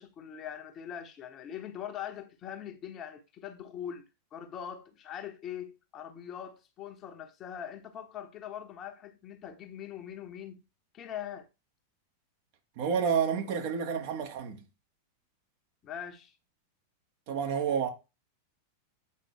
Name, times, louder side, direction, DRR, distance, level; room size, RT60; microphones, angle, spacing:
voice 1, 0.0-10.6 10.9-11.5 15.8-16.3, left 9 dB, 30° left, 1.2 m, -42 dB
voice 2, 12.8-14.6 17.3-17.9, right 7 dB, 50° right, 1.5 m, -29 dB
8.4 x 5.1 x 3.1 m
figure-of-eight pair, 90°, 0 cm